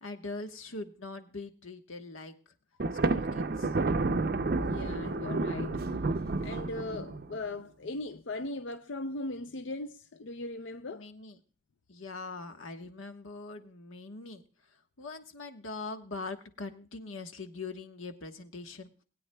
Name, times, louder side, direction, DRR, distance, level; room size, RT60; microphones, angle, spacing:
voice 1, 0.0-2.3 3.1-3.7 10.9-11.4 11.9-14.4 15.0-18.9, left 3 dB, 90° left, 1.2 m, -42 dB
Thunder, 2.8-7.4, right 3 dB, 50° right, 0.5 m, -30 dB
voice 2, 4.6-5.9 6.4-11.1, left 2 dB, 65° left, 0.5 m, -38 dB
20.5 x 9.0 x 2.2 m
head